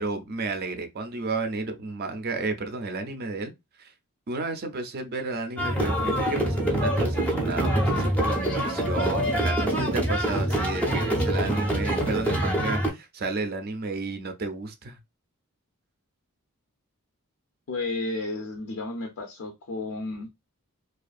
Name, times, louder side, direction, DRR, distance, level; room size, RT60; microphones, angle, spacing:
voice 1, 0.0-3.5 3.8-3.9 4.3-15.0, right 3 dB, 45° right, 0.5 m, -32 dB
sound 1, 5.6-12.9, right 1 dB, 5° left, 0.6 m, -25 dB
voice 2, 17.7-20.3, left 2 dB, 60° left, 0.5 m, -32 dB
2.5 x 2.4 x 2.4 m
head